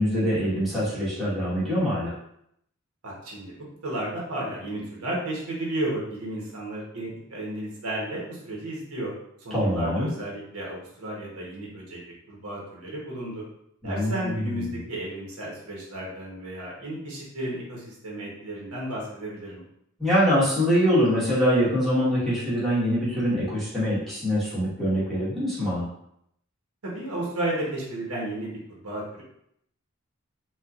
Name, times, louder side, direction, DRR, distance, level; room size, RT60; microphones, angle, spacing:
voice 1, 0.0-2.1 9.5-10.1 13.8-14.8 20.0-25.9, equal, ahead, -12 dB, 1.5 m, -24 dB
voice 2, 3.0-3.5 3.8-9.1 9.4-12.0 12.3-13.4 13.8-19.6 26.8-28.5 28.8-29.2, right 1 dB, 90° right, -4 dB, 1.1 m, -33 dB
4.2 x 2.4 x 2.4 m, 0.74 s
head